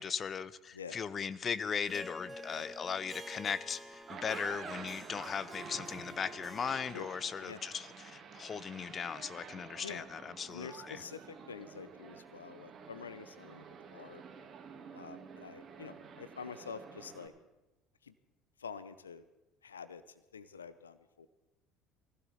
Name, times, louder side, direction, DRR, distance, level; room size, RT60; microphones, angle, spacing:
voice 1, 0.0-11.0, left 7 dB, 35° left, 16 dB, 0.6 m, -38 dB
Harp, 1.8-7.7, equal, 10° right, 1.4 m, -49 dB
sound 1, 3.9-17.3, right 6 dB, 40° right, 2.1 m, -50 dB
voice 2, 10.5-14.2 14.9-17.3 18.0-18.1 18.6-19.2 19.6-21.3, left 6 dB, 85° left, 13 dB, 0.6 m, -47 dB
20.5 x 15.5 x 4.2 m, 0.97 s
figure-of-eight pair, 60°, 0 cm